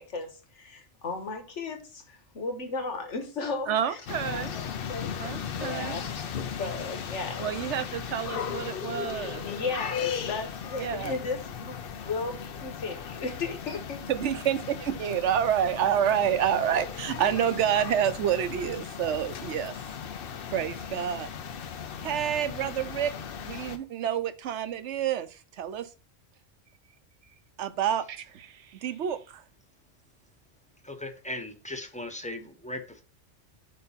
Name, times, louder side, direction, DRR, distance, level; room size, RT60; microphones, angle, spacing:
voice 1, 0.0-6.2 6.6-7.5 9.1-14.0, left 3 dB, 80° left, 1.6 m, -36 dB
voice 2, 3.7-4.6 5.2-6.0 7.4-9.4 10.8-11.2 14.1-19.8 20.5-21.3 22.0-25.9 27.6-29.4, right 9 dB, 75° right, 1.0 m, -28 dB
sound 1, 4.1-23.8, left 7 dB, 60° left, 0.8 m, -37 dB
voice 3, 30.8-33.0, left 1 dB, 5° left, 0.8 m, -38 dB
5.4 x 4.4 x 5.6 m
omnidirectional pair, 1.2 m